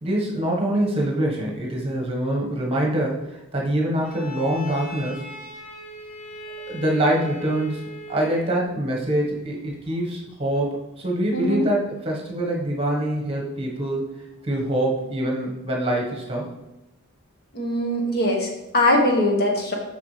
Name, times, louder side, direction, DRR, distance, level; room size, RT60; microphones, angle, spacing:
voice 1, 0.0-5.2 6.7-7.8 8.1-14.2 14.4-16.5, right 1 dB, 25° right, -1 dB, 1.3 m, -25 dB
Bowed string instrument, 4.0-8.6, left 1 dB, 75° left, 2.1 m, -39 dB
voice 2, 11.3-11.7 17.5-19.7, left 1 dB, 45° left, 1 dB, 1.3 m, -21 dB
7.0 x 6.0 x 3.3 m, 0.94 s
head